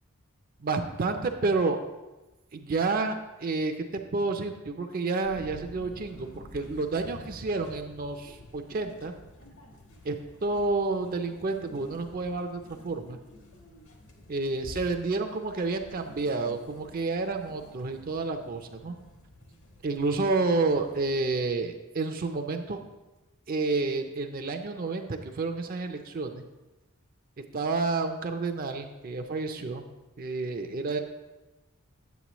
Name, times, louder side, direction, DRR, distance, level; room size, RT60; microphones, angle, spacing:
voice 1, 0.6-1.8 2.5-9.1 10.0-10.2 10.4-13.2 14.3-19.0 19.8-22.8 23.5-26.4 27.4-29.8 30.2-31.0, right 3 dB, 40° right, 6 dB, 0.5 m, -30 dB
sound 1, 5.2-21.4, left 1 dB, 60° left, 1.3 m, -50 dB
8.2 x 7.9 x 3.0 m, 1.1 s
head